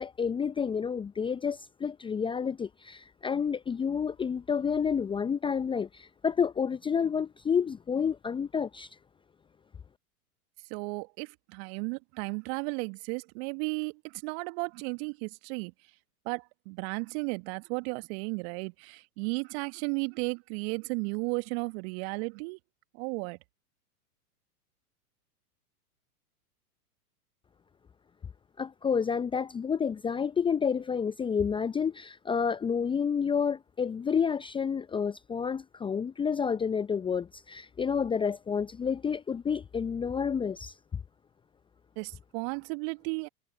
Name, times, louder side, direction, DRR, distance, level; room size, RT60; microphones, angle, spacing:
voice 1, 0.0-8.9 28.6-41.0, left 6 dB, 10° left, 0.8 m, -30 dB
voice 2, 10.7-15.7 16.3-22.6 22.9-23.4 42.0-43.3, right 35 dB, 40° right, 1.8 m, -34 dB
figure-of-eight pair, 100°, 46 cm